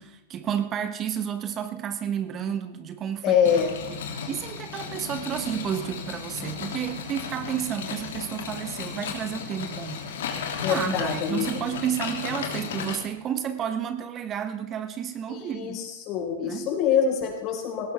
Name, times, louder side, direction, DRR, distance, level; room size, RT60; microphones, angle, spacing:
voice 1, 0.0-3.6 3.9-4.0 4.3-10.0 10.7-15.8 16.4-16.7, right 9 dB, 30° right, 10 dB, 1.1 m, -31 dB
voice 2, 3.2-3.7 10.6-11.5 15.3-17.9, left 8 dB, 40° left, 1 dB, 4.7 m, -25 dB
sound 1, 3.4-13.0, left 6 dB, 70° left, 2.8 m, -34 dB
18.0 x 14.5 x 3.5 m, 1.0 s
hypercardioid pair, 105°, 0 cm